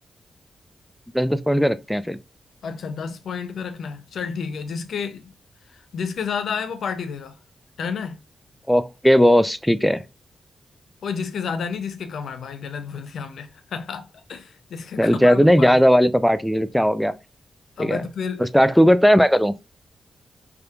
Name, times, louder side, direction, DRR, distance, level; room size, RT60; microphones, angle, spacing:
voice 1, 1.1-2.2 8.7-10.0 15.0-17.1 17.8-18.0 18.4-19.5, equal, ahead, 0.3 m, -17 dB
voice 2, 2.6-5.3 5.7-7.4 7.8-8.2 11.0-15.8 17.8-18.5, left 6 dB, 80° left, 0.4 m, -31 dB
3.4 x 2.7 x 2.3 m
cardioid pair, 55°, 0 cm